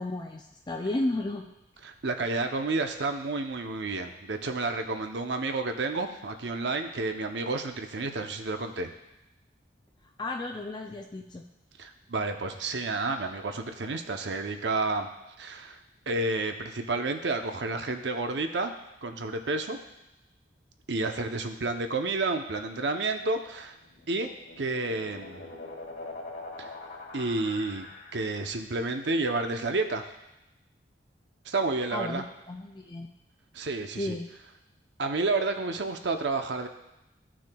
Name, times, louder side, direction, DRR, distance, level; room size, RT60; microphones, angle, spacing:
voice 1, 0.0-1.4 10.2-11.4 31.9-33.1 33.9-34.3, left 2 dB, 25° left, 2 dB, 0.4 m, -33 dB
voice 2, 1.8-8.9 11.8-15.1 15.4-15.8 16.1-18.7 19.0-19.8 20.9-23.8 24.1-25.5 26.6-26.7 27.1-27.9 28.1-30.0 31.5-32.2 33.5-34.1 35.0-36.7, right 3 dB, 70° right, 6 dB, 0.7 m, -30 dB
sound 1, 23.8-28.6, left 2 dB, 65° left, 1.8 m, -43 dB
13.5 x 6.2 x 2.3 m, 0.92 s
head